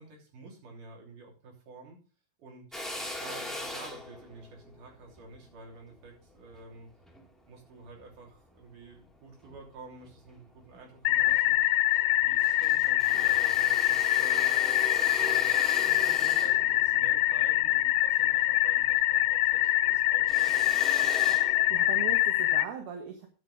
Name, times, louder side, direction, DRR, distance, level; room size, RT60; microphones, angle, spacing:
voice 1, 0.0-2.0 2.4-2.7 3.2-6.9 7.4-11.6 12.2-15.6 15.9-20.7, right 3 dB, 55° right, 0 dB, 4.4 m, -49 dB
Drill, 2.7-7.3 7.8-9.0 9.4-10.4 10.7-10.8 11.1-12.1 12.4-19.0 19.3-22.2, left 1 dB, ahead, 1.0 m, -41 dB
sound 1, 11.1-22.7, left 16 dB, 90° left, 2.7 m, -25 dB
voice 2, 21.4-23.3, right 7 dB, 70° right, 3 dB, 3.3 m, -39 dB
10.0 x 8.3 x 5.1 m, 0.37 s
omnidirectional pair, 4.7 m